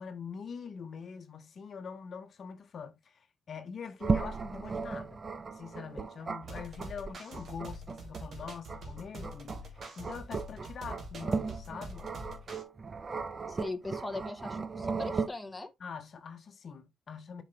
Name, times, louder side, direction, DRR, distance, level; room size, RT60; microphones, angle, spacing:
voice 1, 0.0-5.2 5.5-12.1 15.8-17.4, left 6 dB, 50° left, 1.2 m, -44 dB
sound 1, 4.0-15.3, right 4 dB, 35° right, 0.8 m, -36 dB
sound 2, 6.4-12.6, right 1 dB, 55° right, 2.9 m, -45 dB
voice 2, 13.5-15.7, left 2 dB, 10° left, 1.2 m, -39 dB
7.5 x 5.1 x 3.3 m
cardioid pair, 90°, 0 cm